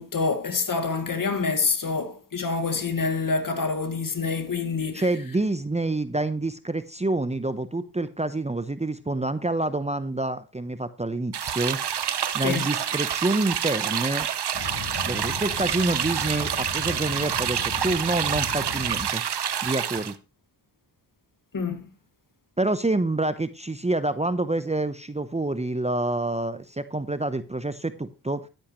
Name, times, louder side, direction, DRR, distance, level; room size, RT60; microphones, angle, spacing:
voice 1, 0.0-5.1 12.4-12.7 21.5-21.9, left 4 dB, 45° left, 2.1 m, -27 dB
voice 2, 4.9-11.8 12.3-14.3 15.1-19.2 19.6-20.2 22.6-28.4, right 2 dB, 15° right, 0.9 m, -27 dB
sound 1, 11.3-20.1, right 9 dB, 60° right, 1.2 m, -28 dB
sound 2, 14.5-19.1, left 4 dB, 60° left, 4.8 m, -37 dB
11.5 x 10.5 x 3.2 m
supercardioid pair, 40°, 46 cm